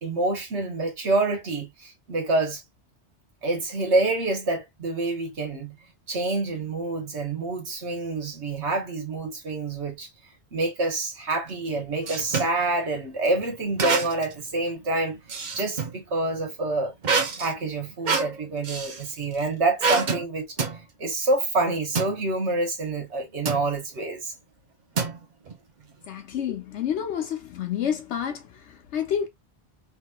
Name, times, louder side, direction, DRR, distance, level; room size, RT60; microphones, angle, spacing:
voice 1, 0.0-2.6 3.4-5.7 6.1-10.1 10.5-15.2 15.5-16.9 17.4-20.6 21.0-24.3, right 2 dB, 80° right, 1.6 m, -27 dB
sound 1, 11.5-12.6 13.8-14.4 14.7-16.0 17.0-19.0 19.8-20.2 20.6-20.8 21.9-22.2 23.5-23.7 25.0-25.5, right 4 dB, 45° right, 0.8 m, -27 dB
voice 2, 26.1-29.3, left 8 dB, 80° left, 1.1 m, -29 dB
3.3 x 3.0 x 2.3 m
omnidirectional pair, 1.1 m